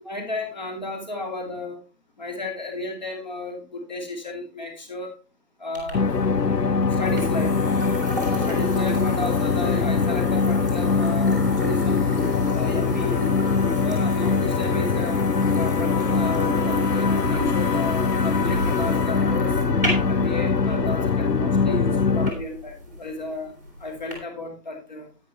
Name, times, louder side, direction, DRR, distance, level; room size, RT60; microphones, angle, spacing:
voice 1, 0.0-1.8 2.2-5.1 5.6-6.0 7.0-7.6 8.5-12.0 12.5-13.2 13.8-15.2 15.6-19.6 20.1-23.5 23.8-25.1, left 2 dB, 25° left, 2 dB, 2.6 m, -33 dB
sound 1, 5.7-24.1, equal, 10° right, 1.6 m, -33 dB
sound 2, 5.9-22.3, left 4 dB, 75° left, 0.9 m, -22 dB
10.5 x 9.4 x 3.2 m, 0.31 s
figure-of-eight pair, 170°, 49 cm